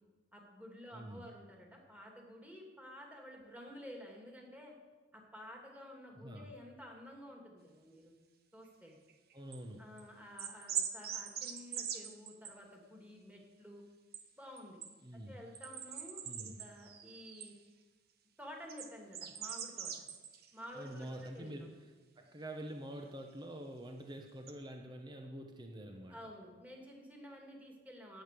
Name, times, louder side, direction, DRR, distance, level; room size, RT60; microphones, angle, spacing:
voice 1, 0.3-4.7 5.1-8.1 8.5-8.9 9.8-13.8 14.4-14.8 15.3-17.5 18.4-20.1 20.5-21.7 26.1-28.2, equal, 10° right, 0 dB, 2.5 m, -52 dB
voice 2, 0.9-1.3 6.1-6.5 9.3-9.8 15.0-15.4 16.2-16.6 20.7-26.3, right 1 dB, 25° right, 3 dB, 1.0 m, -47 dB
sound 1, 8.9-9.6 10.0-10.1 10.4-12.5 14.1-14.2 14.6-14.9 15.5-17.5 18.7-20.5 20.8-21.3 23.0-23.1 24.5-24.6, right 8 dB, 55° right, 1.2 m, -42 dB
13.0 x 8.8 x 6.8 m, 1.3 s
head